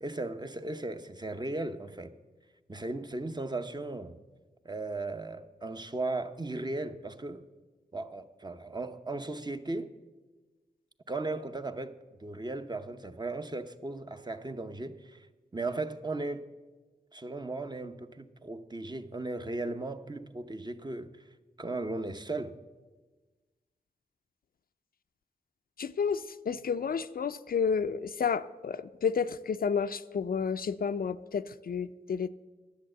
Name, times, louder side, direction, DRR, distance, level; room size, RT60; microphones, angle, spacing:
voice 1, 0.0-2.1 2.7-4.2 4.6-7.5 7.9-9.9 11.1-11.9 12.2-15.2 15.5-16.5 17.1-21.1 21.6-22.6, right 2 dB, 25° right, 0.8 m, -36 dB
voice 2, 25.8-32.3, left 6 dB, 60° left, 0.4 m, -31 dB
10.0 x 7.9 x 7.7 m
cardioid pair, 50°, 17 cm